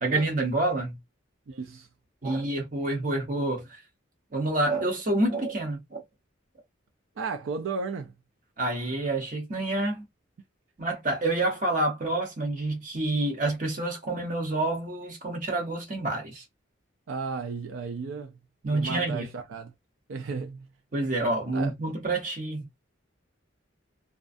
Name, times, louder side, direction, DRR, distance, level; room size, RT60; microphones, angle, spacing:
voice 1, 0.0-1.0 2.2-3.8 4.3-6.0 8.6-10.1 10.8-16.4 18.6-19.3 20.9-22.7, right 2 dB, 40° right, 0.9 m, -28 dB
voice 2, 1.5-1.9 7.2-8.1 17.1-18.3 18.6-19.7 20.1-20.7 21.5-21.7, right 4 dB, 80° right, 0.4 m, -34 dB
2.4 x 2.1 x 2.5 m
head